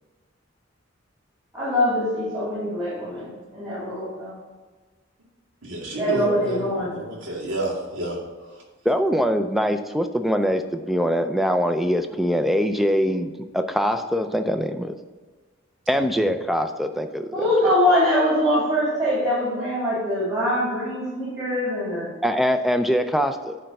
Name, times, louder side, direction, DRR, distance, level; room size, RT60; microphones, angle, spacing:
voice 1, 1.5-4.4 5.9-6.9 17.3-22.1, left 1 dB, 20° right, -9 dB, 2.6 m, -23 dB
voice 2, 5.6-8.2 8.5-8.6 16.1-16.2, right 1 dB, 85° right, -4 dB, 2.2 m, -30 dB
voice 3, 8.9-14.9 15.9-17.7 22.2-23.6, equal, ahead, 7 dB, 0.4 m, -23 dB
10.0 x 3.4 x 6.4 m, 1.4 s
head